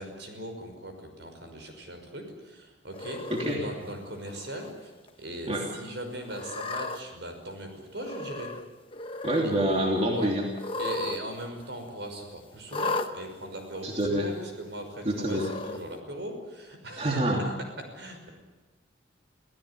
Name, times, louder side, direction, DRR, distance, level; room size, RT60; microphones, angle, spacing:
voice 1, 0.0-8.5 9.4-9.5 10.1-10.3 10.8-17.4 17.9-18.3, right 1 dB, 65° right, 5 dB, 5.8 m, -39 dB
Cat, 2.9-3.5 4.3-4.7 5.1-5.2 6.3-7.0 8.0-8.6 8.9-9.5 10.5-11.2 11.5-11.6 12.7-13.1 14.0-14.1 15.2-15.8, left 3 dB, 30° left, 1.2 m, -34 dB
voice 2, 3.3-3.6 5.5-5.7 9.2-10.4 13.8-14.3 15.0-15.5 17.0-17.4, right 1 dB, 30° right, 0 dB, 2.9 m, -26 dB
27.0 x 16.5 x 9.9 m, 1.2 s
head